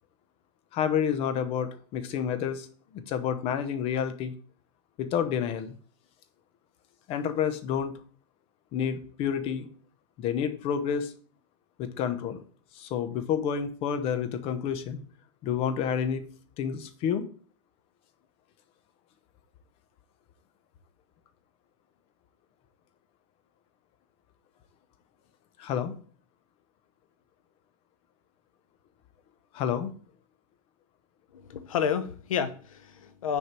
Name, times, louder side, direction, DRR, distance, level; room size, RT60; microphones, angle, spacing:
voice 1, 0.7-2.7 2.9-4.3 5.0-5.7 7.1-7.9 8.7-9.7 10.2-11.1 11.8-12.4 12.7-15.0 15.4-16.2 16.6-17.2 25.6-25.9 29.5-29.9, left 8 dB, 35° left, 10 dB, 0.9 m, -29 dB
voice 2, 31.3-33.4, left 7 dB, 85° left, 10 dB, 1.1 m, -30 dB
6.6 x 4.7 x 4.6 m, 0.43 s
supercardioid pair, 145°, 17 cm